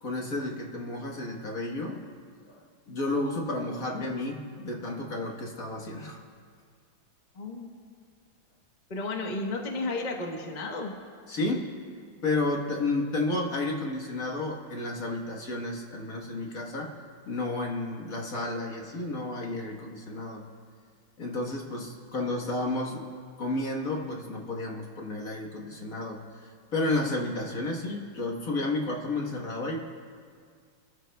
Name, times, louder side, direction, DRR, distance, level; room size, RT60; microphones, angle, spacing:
voice 1, 0.0-2.1 2.5-2.6 2.9-6.2 11.3-11.8 12.2-17.0 17.3-20.5 21.2-23.1 23.4-26.2 26.7-29.8, left 2 dB, 45° left, 0 dB, 1.6 m, -31 dB
voice 2, 7.3-7.7 8.9-10.9, left 2 dB, 30° left, 1 dB, 0.9 m, -33 dB
25.5 x 14.0 x 2.3 m, 2.1 s
omnidirectional pair, 2.3 m